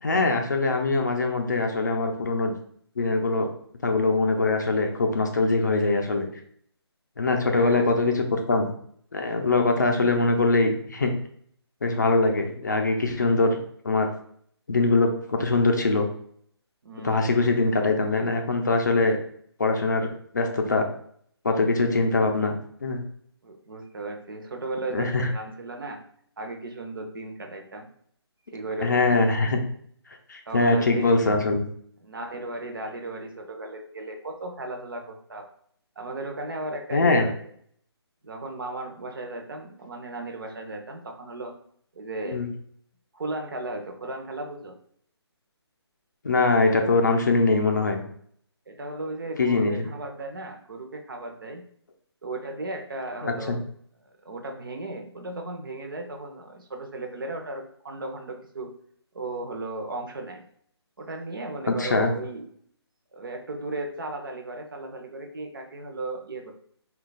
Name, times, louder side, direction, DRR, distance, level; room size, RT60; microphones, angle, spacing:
voice 1, 0.0-2.5 3.0-3.5 3.8-6.3 7.2-8.7 9.1-11.1 11.8-13.6 13.8-14.1 14.7-16.1 17.0-19.2 19.6-20.1 20.3-20.9 21.4-23.0 24.9-25.3 28.8-29.6 30.3-31.6 36.9-37.3 42.3-42.5 46.2-48.0 49.4-49.9 53.2-53.6 61.7-62.1, left 3 dB, 45° left, 3 dB, 0.5 m, -22 dB
voice 2, 7.5-7.9 16.8-17.3 23.4-26.0 26.4-27.9 28.5-29.2 30.5-31.2 32.0-35.5 36.0-37.4 38.2-41.5 42.0-42.4 43.1-44.8 48.7-51.6 52.2-53.6 54.2-58.7 59.1-60.4 61.0-62.4 63.1-66.5, right 2 dB, 50° right, 4 dB, 0.6 m, -35 dB
3.0 x 2.3 x 3.9 m, 0.62 s
hypercardioid pair, 175°, 14 cm